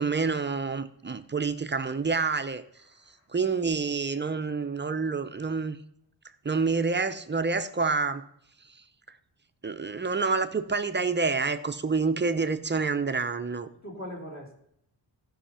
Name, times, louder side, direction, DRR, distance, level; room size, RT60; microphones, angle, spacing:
voice 1, 0.0-2.6 3.3-5.8 6.4-8.2 9.6-13.7, right 4 dB, 25° right, 9 dB, 0.6 m, -28 dB
voice 2, 2.9-3.3 3.8-3.9 13.8-14.5, equal, 40° left, -1 dB, 3.6 m, -41 dB
15.5 x 5.6 x 5.7 m, 0.72 s
wide cardioid pair, 165°, 44 cm